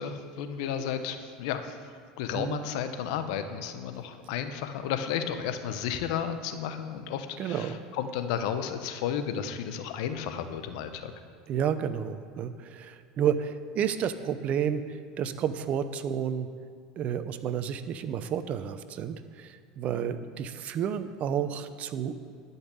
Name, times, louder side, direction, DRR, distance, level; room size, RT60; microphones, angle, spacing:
voice 1, 0.0-1.8 2.2-11.1, left 8 dB, 70° left, 8 dB, 1.0 m, -33 dB
voice 2, 7.4-7.8 11.5-16.5 17.0-22.1, right 8 dB, 50° right, 11 dB, 0.8 m, -31 dB
12.0 x 5.6 x 8.4 m, 2.3 s
hypercardioid pair, 95°, 3 cm